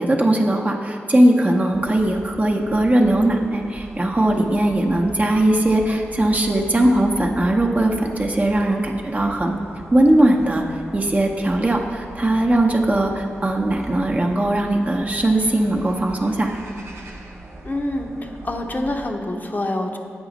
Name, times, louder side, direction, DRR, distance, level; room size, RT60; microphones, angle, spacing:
voice 1, 0.0-9.5 9.9-10.6 10.9-16.6, right 1 dB, 30° right, 1 dB, 0.8 m, -19 dB
sound 1, 1.7-19.1, right 2 dB, 70° right, 0.8 m, -39 dB
voice 2, 17.6-20.0, left 1 dB, 40° left, 3 dB, 0.7 m, -26 dB
8.0 x 4.9 x 4.0 m, 2.5 s
cardioid pair, 40°, 5 cm